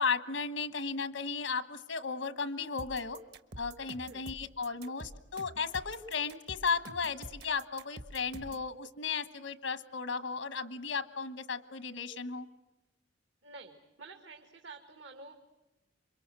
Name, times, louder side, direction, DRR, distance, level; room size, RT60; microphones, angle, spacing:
voice 1, 0.0-3.2 3.6-12.5, left 5 dB, 85° left, 12 dB, 1.4 m, -35 dB
sound 1, 2.8-8.7, right 1 dB, 60° right, 1.3 m, -47 dB
voice 2, 13.4-15.4, right 3 dB, 80° right, 4 dB, 2.0 m, -50 dB
27.5 x 24.0 x 7.7 m, 1.0 s
head